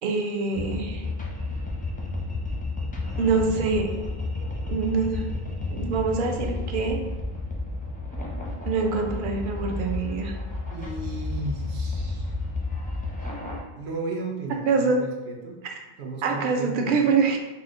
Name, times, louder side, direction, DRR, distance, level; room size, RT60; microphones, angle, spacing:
voice 1, 0.0-1.0 3.2-3.9 4.7-5.3 5.7-7.0 8.7-10.4 14.7-15.0 16.2-17.4, right 4 dB, 60° right, 2 dB, 0.7 m, -24 dB
sound 1, 0.5-13.6, left 2 dB, 10° left, 0.4 m, -31 dB
voice 2, 10.7-12.3 13.7-15.6 16.0-17.1, right 2 dB, 85° right, 0 dB, 1.0 m, -34 dB
4.1 x 2.1 x 3.7 m, 1.1 s
omnidirectional pair, 1.0 m